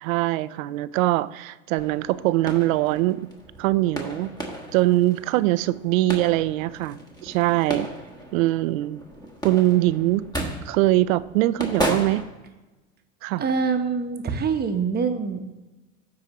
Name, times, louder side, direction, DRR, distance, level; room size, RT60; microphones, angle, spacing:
voice 1, 0.0-3.3 3.6-4.3 4.7-7.9 8.3-9.0 9.4-10.2 10.7-12.2 13.2-13.4, right 17 dB, 75° right, 16 dB, 0.5 m, -22 dB
sound 1, 1.8-12.2, right 1 dB, 10° left, 1.3 m, -34 dB
voice 2, 13.4-15.6, right 5 dB, 25° right, 6 dB, 0.9 m, -25 dB
13.5 x 4.9 x 3.0 m, 1.1 s
supercardioid pair, 110°, 41 cm